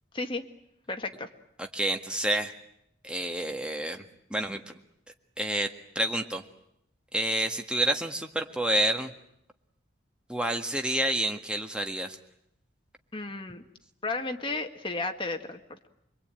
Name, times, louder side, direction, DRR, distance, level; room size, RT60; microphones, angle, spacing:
voice 1, 0.1-0.4 0.9-1.3 13.1-13.6 14.0-15.9, left 3 dB, 30° left, 5 dB, 1.8 m, -33 dB
voice 2, 1.6-2.5 3.0-4.0 4.3-4.7 5.4-5.7 6.0-6.4 7.1-9.1 10.3-12.2, right 1 dB, 5° right, 4 dB, 1.7 m, -28 dB
26.0 x 22.5 x 9.1 m, 0.77 s
head